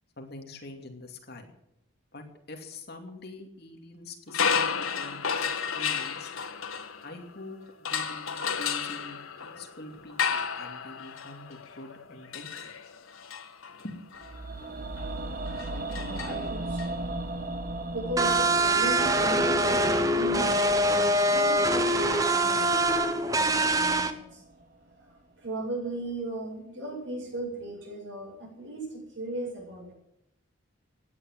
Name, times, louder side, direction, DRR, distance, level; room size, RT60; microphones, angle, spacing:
voice 1, 0.2-1.5 2.1-5.5 5.7-6.3 7.0-12.7 13.8-14.1, left 2 dB, 50° left, 3 dB, 2.7 m, -45 dB
sound 1, 4.3-7.4 7.8-16.9, left 6 dB, 85° left, 1.7 m, -33 dB
sound 2, 14.2-24.3 24.6-24.7, right 2 dB, 40° right, 1.3 m, -37 dB
voice 2, 15.2-15.5 15.8-17.0 17.9-22.9 23.3-24.4 25.0-29.9, right 1 dB, 65° right, -1 dB, 7.9 m, -37 dB
sound 3, 18.2-24.1, right 1 dB, 15° right, 1.0 m, -24 dB
17.0 x 10.0 x 8.0 m, 0.80 s
head